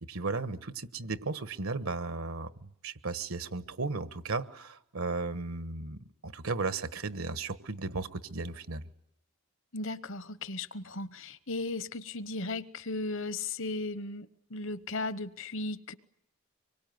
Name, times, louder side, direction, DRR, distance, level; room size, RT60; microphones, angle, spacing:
voice 1, 0.1-8.8, right 3 dB, 80° right, 1.3 m, -35 dB
voice 2, 9.7-15.9, left 2 dB, 60° left, 1.0 m, -36 dB
25.0 x 23.0 x 9.4 m
head